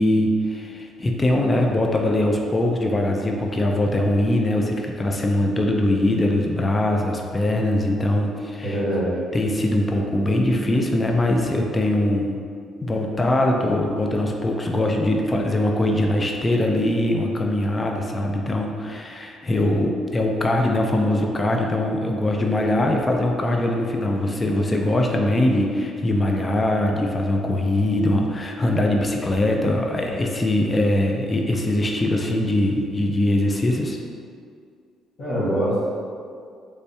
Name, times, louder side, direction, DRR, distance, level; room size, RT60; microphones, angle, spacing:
voice 1, 0.0-8.8 9.3-12.4 12.8-34.0, left 1 dB, 20° left, 1 dB, 0.3 m, -22 dB
voice 2, 8.6-9.1 19.5-19.8 35.2-35.9, equal, 60° left, -11 dB, 1.4 m, -24 dB
3.3 x 3.3 x 2.7 m, 2.2 s
cardioid pair, 125°, 0 cm